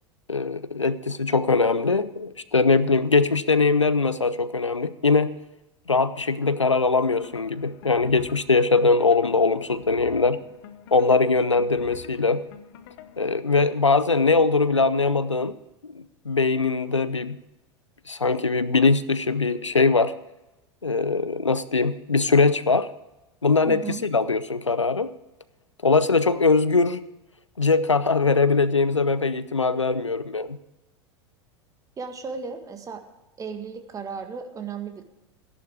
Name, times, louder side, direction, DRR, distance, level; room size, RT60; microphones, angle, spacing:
voice 1, 0.3-5.3 5.9-10.4 10.9-12.4 13.2-15.5 15.8-17.4 18.1-20.1 20.8-22.9 23.4-25.1 25.8-27.0 27.6-30.6, left 4 dB, 90° left, 16 dB, 0.6 m, -21 dB
sound 1, 7.0-13.3, left 10 dB, 55° left, 1.1 m, -46 dB
voice 2, 23.7-24.0 32.0-33.0 33.4-35.0, right 5 dB, 20° right, 7 dB, 1.8 m, -35 dB
15.5 x 11.0 x 4.8 m, 0.95 s
figure-of-eight pair, 85°, 15 cm